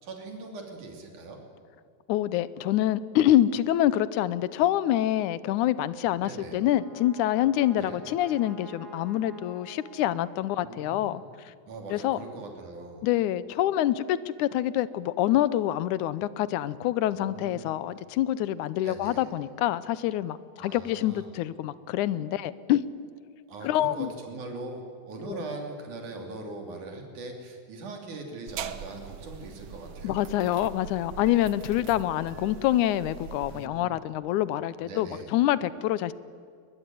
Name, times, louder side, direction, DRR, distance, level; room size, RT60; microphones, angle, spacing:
voice 1, 0.0-1.4 6.2-6.6 7.7-8.0 10.6-11.2 11.7-13.1 17.1-17.8 18.8-19.3 20.6-21.3 23.5-30.4 33.5-34.0 34.8-35.3, right 2 dB, 85° right, 3 dB, 4.5 m, -41 dB
voice 2, 2.1-11.2 11.9-12.2 13.0-22.9 23.6-24.1 25.3-25.4 30.0-36.1, left 13 dB, 90° left, 17 dB, 2.2 m, -26 dB
Brass instrument, 6.3-10.7, right 3 dB, 35° right, 2.4 m, -48 dB
sound 1, 28.5-33.7, right 7 dB, 65° right, 1.9 m, -42 dB
21.5 x 21.0 x 9.3 m, 2.2 s
omnidirectional pair, 3.4 m